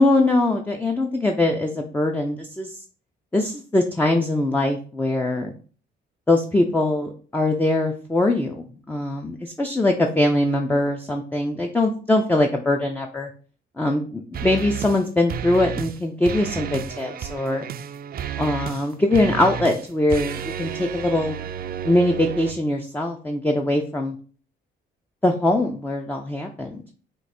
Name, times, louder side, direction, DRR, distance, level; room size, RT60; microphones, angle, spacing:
voice 1, 0.0-2.8 3.3-5.5 6.3-13.3 13.8-17.7 18.4-21.4 21.8-24.2 25.2-26.8, left 1 dB, 10° left, 3 dB, 0.5 m, -22 dB
sound 1, 14.3-15.0 15.3-16.0 16.2-22.5, right 9 dB, 50° right, 0.4 m, -32 dB
4.5 x 2.5 x 4.2 m, 0.41 s
cardioid pair, 90°, 20 cm